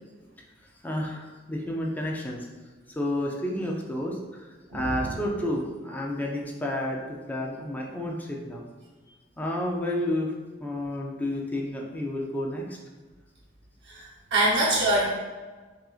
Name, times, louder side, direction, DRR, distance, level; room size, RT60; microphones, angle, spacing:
voice 1, 0.8-2.5 2.9-4.5 4.7-8.7 9.4-10.3 10.6-12.8, left 1 dB, 10° left, -2 dB, 0.4 m, -30 dB
voice 2, 4.7-5.1 13.8-15.0, right 1 dB, 70° right, -8 dB, 0.8 m, -25 dB
5.7 x 2.5 x 2.4 m, 1.3 s
head